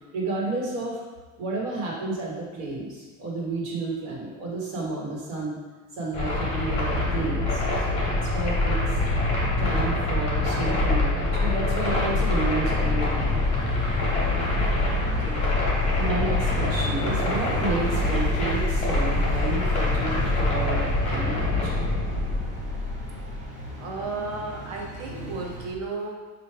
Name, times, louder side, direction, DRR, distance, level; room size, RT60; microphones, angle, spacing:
voice 1, 0.1-1.0 1.4-5.6 5.9-8.8 9.6-13.4 16.0-21.7, right 2 dB, 85° right, -4 dB, 1.3 m, -31 dB
sound 1, 6.1-23.5, left 2 dB, 15° left, 0.8 m, -25 dB
sound 2, 11.8-25.7, right 1 dB, 20° right, 0.6 m, -40 dB
voice 2, 14.6-15.4 23.8-26.3, right 3 dB, 65° right, -1 dB, 0.8 m, -34 dB
4.5 x 2.4 x 3.2 m, 1.3 s
cardioid pair, 175°, 39 cm